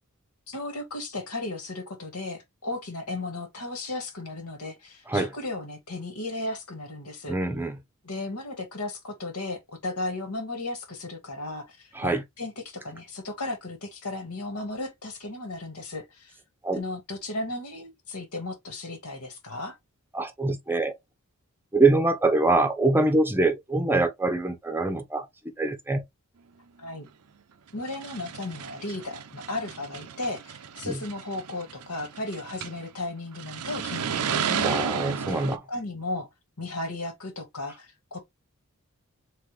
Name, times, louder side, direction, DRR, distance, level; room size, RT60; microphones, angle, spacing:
voice 1, 0.5-7.4 8.0-16.3 16.7-19.8 26.8-27.1 27.7-34.7 35.3-35.4 35.7-36.3 36.6-38.2, left 2 dB, 80° left, 1.7 m, -35 dB
voice 2, 7.3-7.8 11.9-12.2 16.6-16.8 20.1-20.9 21.7-25.3 25.6-26.0 30.8-31.0 34.6-35.6, right 2 dB, 10° right, 0.7 m, -24 dB
sound 1, 27.1-27.2 27.8-32.9 33.3-35.6, right 7 dB, 90° right, 0.6 m, -33 dB
3.9 x 3.5 x 3.2 m
head